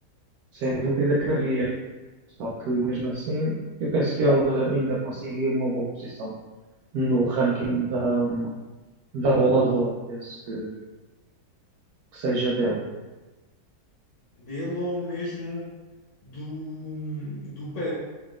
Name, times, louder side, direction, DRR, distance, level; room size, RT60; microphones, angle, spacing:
voice 1, 0.5-1.7 2.4-6.3 6.9-8.5 9.1-10.7 12.1-12.8, right 2 dB, 75° right, -4 dB, 0.8 m, -25 dB
voice 2, 14.4-15.7 16.2-17.9, left 1 dB, 75° left, -7 dB, 1.8 m, -33 dB
4.0 x 3.7 x 2.4 m, 1.2 s
omnidirectional pair, 2.2 m